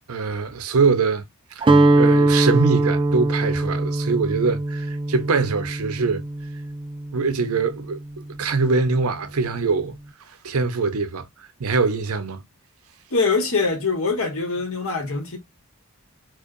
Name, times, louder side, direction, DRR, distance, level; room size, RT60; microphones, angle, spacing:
voice 1, 0.1-1.2 1.6-6.2 7.1-8.0 8.4-10.0 10.4-11.3 11.6-12.4, right 4 dB, 85° right, 0.7 m, -23 dB
Guitar, 1.6-7.7, right 2 dB, 25° right, 0.3 m, -21 dB
voice 2, 13.1-15.4, left 4 dB, 70° left, 1.3 m, -23 dB
4.7 x 2.2 x 2.5 m
head